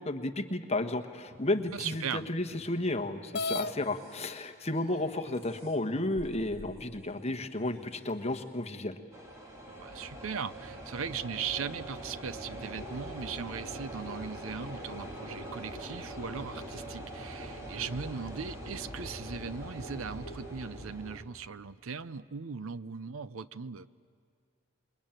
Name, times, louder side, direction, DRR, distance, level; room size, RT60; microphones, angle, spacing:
voice 1, 0.0-9.0, left 2 dB, 30° left, 6 dB, 1.3 m, -32 dB
sound 1, 1.2-3.1 3.4-8.6, equal, 30° right, 2.9 m, -56 dB
voice 2, 1.7-2.3 9.7-23.9, right 6 dB, 80° right, 15 dB, 0.6 m, -39 dB
sound 2, 3.3-3.7 4.7-4.8 5.4-5.5 6.2-6.8, left 3 dB, 50° left, 0.6 m, -34 dB
sound 3, 9.1-21.2, right 1 dB, 15° right, 3.0 m, -42 dB
27.5 x 22.0 x 9.0 m, 2.2 s
head